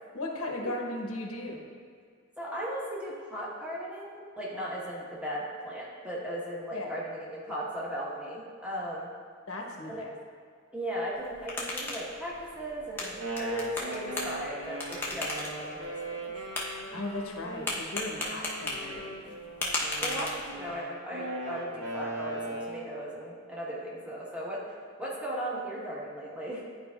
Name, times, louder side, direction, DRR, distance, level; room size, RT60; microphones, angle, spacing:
voice 1, 0.1-1.7 6.7-6.9 9.5-10.1 16.9-19.3, left 1 dB, 85° left, 0 dB, 1.0 m, -37 dB
voice 2, 2.4-9.1 9.9-10.0 10.7-16.3 18.2-18.3 19.6-24.6 25.0-26.6, equal, 5° right, -6 dB, 1.1 m, -37 dB
sound 1, 11.1-20.8, left 2 dB, 10° left, 0.8 m, -37 dB
Wind instrument woodwind instrument, 13.0-17.7 18.2-22.9, right 2 dB, 65° right, 1.1 m, -39 dB
11.0 x 4.7 x 2.3 m, 2.1 s
head